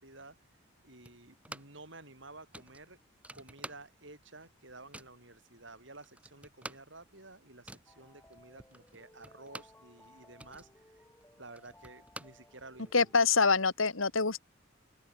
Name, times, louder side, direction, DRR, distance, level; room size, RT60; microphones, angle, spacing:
voice 1, 0.0-3.0 3.3-11.1 11.4-13.3 13.6-13.7, right 2 dB, 65° right, 7.8 m, -53 dB
sound 1, 1.0-1.9 2.1-2.2 2.5-4.2 4.5-5.2 5.7-5.8 6.0-9.9 10.2-13.0, right 1 dB, 5° right, 4.5 m, -49 dB
sound 2, 7.9-13.1, left 1 dB, 10° left, 5.0 m, -61 dB
voice 2, 12.9-14.4, left 4 dB, 80° left, 2.2 m, -25 dB
head